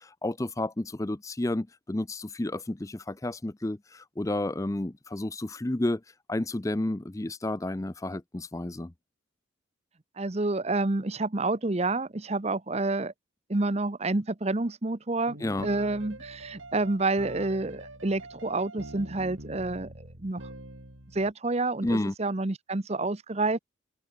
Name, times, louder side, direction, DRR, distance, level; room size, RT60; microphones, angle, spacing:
voice 1, 0.0-6.0 6.3-8.9 15.4-15.7 21.8-22.1, left 1 dB, 15° left, 0.5 m, -31 dB
voice 2, 10.2-13.1 13.5-15.4 15.6-20.4 21.1-23.6, right 2 dB, 30° right, 0.9 m, -29 dB
sound 1, 15.3-21.3, right 1 dB, 85° right, 7.8 m, -44 dB
head